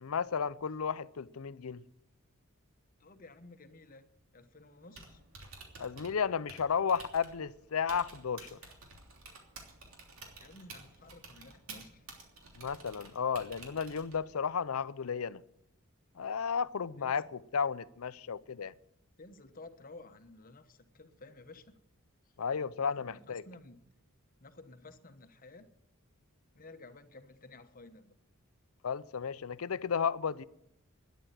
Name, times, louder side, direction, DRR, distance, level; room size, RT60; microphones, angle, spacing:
voice 1, 0.0-1.8 5.8-8.6 12.6-15.4 16.2-17.3 17.5-18.7 22.4-23.4 28.8-30.4, left 6 dB, 80° left, 0.6 m, -33 dB
voice 2, 3.0-4.1 4.3-5.2 10.4-12.1 17.0-17.3 19.2-21.7 22.2-22.3 22.8-23.8 24.4-25.7 26.5-28.2, left 2 dB, 40° left, 1.2 m, -53 dB
Typing, 4.8-14.4, right 3 dB, 70° right, 3.1 m, -52 dB
12.5 x 10.5 x 9.3 m
head